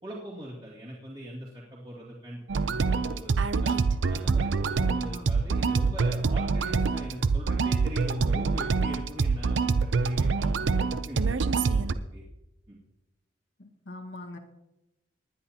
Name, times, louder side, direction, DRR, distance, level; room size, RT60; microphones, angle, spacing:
voice 1, 0.0-3.8 4.1-11.4 11.8-12.2 12.7-12.8, right 1 dB, 30° right, -6 dB, 2.3 m, -42 dB
sound 1, 2.5-11.9, right 4 dB, 85° right, 0.6 m, -25 dB
voice 2, 4.8-5.2 13.6-14.4, left 1 dB, 80° left, 2 dB, 1.6 m, -42 dB
19.5 x 11.0 x 2.9 m, 0.95 s
head